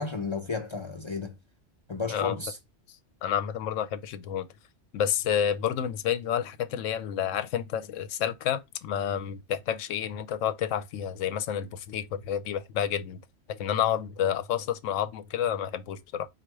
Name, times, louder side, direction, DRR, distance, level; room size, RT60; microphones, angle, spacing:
voice 1, 0.0-1.3 1.9-2.6, left 4 dB, 50° left, 0.3 m, -33 dB
voice 2, 3.2-4.5 4.9-13.2 13.5-16.3, left 9 dB, 85° left, 0.9 m, -29 dB
4.2 x 2.4 x 4.6 m
omnidirectional pair, 1.3 m